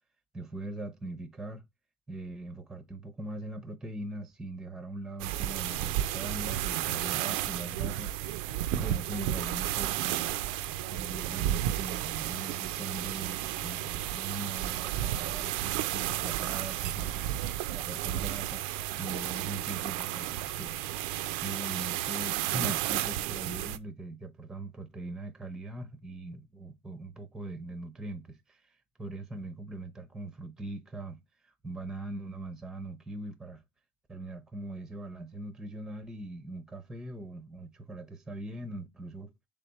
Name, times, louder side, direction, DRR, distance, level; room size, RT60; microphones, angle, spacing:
voice 1, 0.3-1.6 2.1-8.1 8.7-10.3 10.9-17.4 17.7-18.6 19.0-20.8 21.4-33.6 34.1-39.3, right 2 dB, 10° right, 0.6 m, -41 dB
sound 1, 5.2-23.8, right 13 dB, 85° right, 0.4 m, -32 dB
3.4 x 3.4 x 3.9 m
cardioid pair, 145°, 5 cm